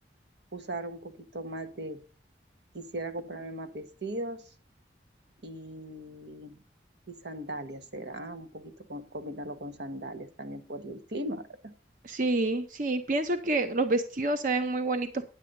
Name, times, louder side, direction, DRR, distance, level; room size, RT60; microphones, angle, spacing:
voice 1, 0.5-2.0 2.7-4.5 5.4-6.6 7.1-11.7, right 1 dB, 75° right, 10 dB, 1.1 m, -38 dB
voice 2, 12.0-15.2, right 2 dB, 50° right, 9 dB, 0.7 m, -28 dB
10.0 x 8.3 x 5.2 m, 0.36 s
head